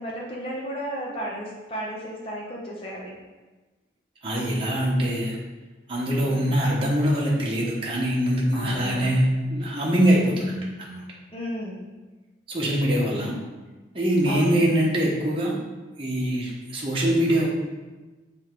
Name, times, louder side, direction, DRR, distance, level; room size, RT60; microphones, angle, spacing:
voice 1, 0.0-3.1 8.5-9.2 11.3-11.9 14.3-14.6, equal, 30° left, -4 dB, 1.0 m, -34 dB
voice 2, 4.2-5.4 5.9-9.2 9.5-11.0 12.5-13.4 13.9-15.6 16.0-17.5, equal, 30° right, -5 dB, 1.1 m, -23 dB
7.2 x 3.4 x 4.6 m, 1.2 s
head